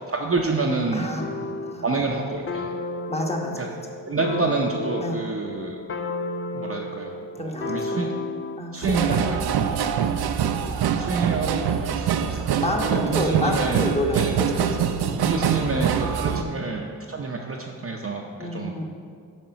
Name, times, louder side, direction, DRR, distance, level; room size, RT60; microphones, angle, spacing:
voice 1, 0.1-1.5 1.8-2.7 3.5-3.7 4.0-5.8 6.5-8.1 8.7-9.9 10.6-10.7 11.0-13.8 14.1-14.3 15.2-18.2 18.5-18.9, right 3 dB, 35° right, -1 dB, 0.7 m, -28 dB
voice 2, 0.9-1.8 3.1-3.8 5.0-5.2 7.4-8.1 8.6-9.5 12.6-15.2 16.3-16.6 18.4-18.9, left 1 dB, 15° left, 1 dB, 1.2 m, -30 dB
sound 1, 1.2-1.8 2.5-8.7, left 2 dB, 35° left, 0.5 m, -32 dB
sound 2, 8.8-16.4, right 8 dB, 70° right, 0.5 m, -24 dB
7.6 x 3.7 x 5.7 m, 2.1 s
supercardioid pair, 45°, 40 cm